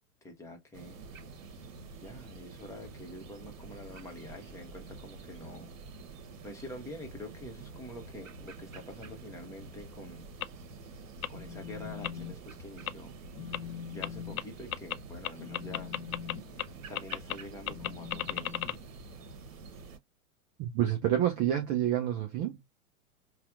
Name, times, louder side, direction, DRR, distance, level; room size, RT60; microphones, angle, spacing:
voice 1, 0.2-1.0 2.0-5.7 6.4-10.3 11.3-13.1 13.4-13.6 13.9-15.9 16.9-18.5, left 1 dB, 5° left, 1.1 m, -46 dB
sound 1, 0.7-20.0, right 4 dB, 60° right, 1.2 m, -48 dB
sound 2, 10.4-10.5 11.2-11.3 12.0-12.1 12.9-13.0 13.5-13.6 14.0-14.1 14.4-14.5 14.7-15.0 15.2-16.3 16.6-16.7 17.0-17.3 17.7-18.8, left 12 dB, 65° left, 0.5 m, -33 dB
Telephone, 11.1-12.4 12.7-13.0 13.3-19.5, left 8 dB, 30° left, 0.6 m, -44 dB
voice 2, 20.6-22.6, right 11 dB, 20° right, 0.5 m, -28 dB
5.6 x 2.3 x 2.5 m
figure-of-eight pair, 105°, 45 cm